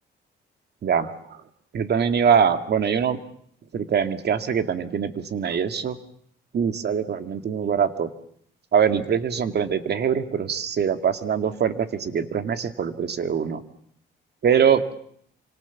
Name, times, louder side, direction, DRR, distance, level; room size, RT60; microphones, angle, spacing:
voice 1, 0.8-1.4 1.7-3.2 3.7-6.0 6.5-8.1 8.7-13.6 14.4-14.8, right 7 dB, 55° right, 9 dB, 2.2 m, -23 dB
28.0 x 25.5 x 7.2 m, 0.66 s
cardioid pair, 90°, 20 cm